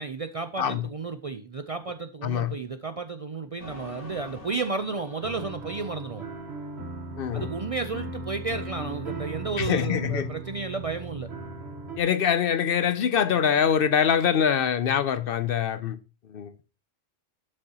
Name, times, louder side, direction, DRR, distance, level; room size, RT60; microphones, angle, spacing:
voice 1, 0.0-6.3 7.3-11.3, right 4 dB, 45° right, 0.4 m, -33 dB
voice 2, 2.2-2.5 7.2-7.5 9.6-10.3 12.0-16.0 16.3-16.5, left 8 dB, 60° left, 0.7 m, -24 dB
sound 1, 3.6-7.0, left 1 dB, 85° left, 1.9 m, -46 dB
sound 2, 5.2-12.0, right 3 dB, 70° right, 1.5 m, -37 dB
11.5 x 6.6 x 2.9 m
omnidirectional pair, 1.1 m